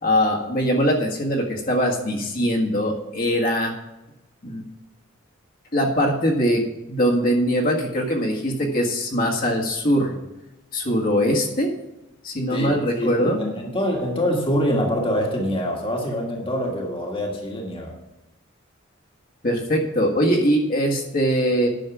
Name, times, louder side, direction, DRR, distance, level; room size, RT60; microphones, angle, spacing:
voice 1, 0.0-3.7 4.4-4.6 5.7-6.6 6.9-10.1 10.7-11.7 12.2-13.4 19.4-21.7, equal, 45° left, -1 dB, 1.7 m, -21 dB
voice 2, 12.5-17.9, equal, 25° left, 0 dB, 1.7 m, -25 dB
10.5 x 6.4 x 6.1 m, 0.99 s
head